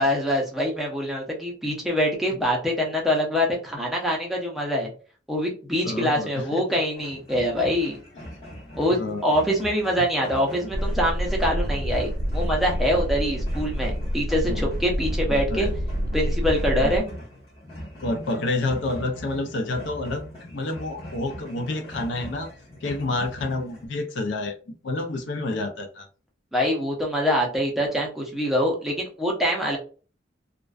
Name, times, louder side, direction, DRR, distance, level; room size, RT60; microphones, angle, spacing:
voice 1, 0.0-4.9 5.3-8.0 8.8-15.7 16.1-17.0 26.5-29.8, equal, ahead, -2 dB, 0.5 m, -24 dB
voice 2, 5.8-6.6 8.9-9.2 14.4-14.7 15.3-15.7 16.8-17.0 18.0-22.5 22.8-24.6 24.8-26.1, left 2 dB, 70° left, 5 dB, 0.5 m, -29 dB
sound 1, 7.0-23.9, equal, 30° left, 1.0 m, -41 dB
sound 2, 10.7-17.0, equal, 55° right, 0.4 m, -27 dB
2.4 x 2.2 x 2.3 m, 0.37 s
head